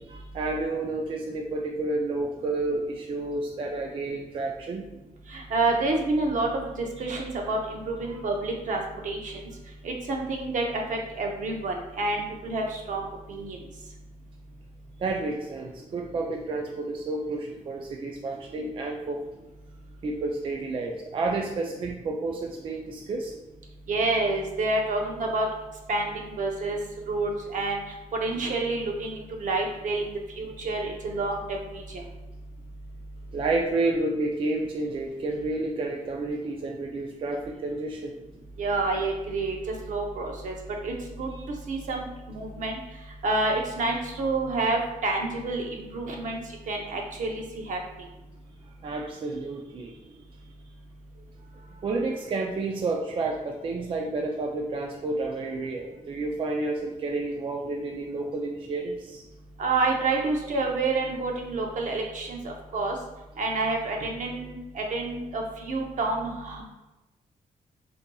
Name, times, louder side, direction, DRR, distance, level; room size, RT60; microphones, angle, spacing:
voice 1, 0.0-4.8 8.0-8.2 15.0-19.2 20.0-23.3 33.3-38.1 41.3-41.5 48.8-50.0 51.5-59.2, right 2 dB, 40° right, 0 dB, 0.3 m, -30 dB
voice 2, 5.3-9.5 9.8-13.6 23.9-25.5 25.9-26.8 27.1-27.8 28.2-32.0 38.6-39.6 39.9-40.6 40.8-41.3 41.7-42.8 43.2-47.8 59.6-63.0 63.4-66.6, right 2 dB, 65° right, 1 dB, 0.7 m, -28 dB
5.3 x 2.7 x 2.3 m, 1.0 s
wide cardioid pair, 150°, 14 cm